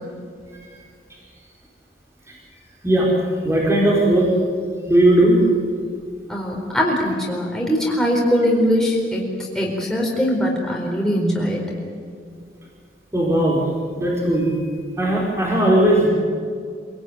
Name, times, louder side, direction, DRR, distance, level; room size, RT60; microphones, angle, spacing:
voice 1, 3.4-4.3 4.9-5.4 13.1-13.6 14.0-14.6 15.0-16.1, right 1 dB, 15° right, -3 dB, 4.6 m, -17 dB
voice 2, 6.3-11.6, equal, 5° left, -2 dB, 4.4 m, -21 dB
26.0 x 18.5 x 9.4 m, 2.2 s
head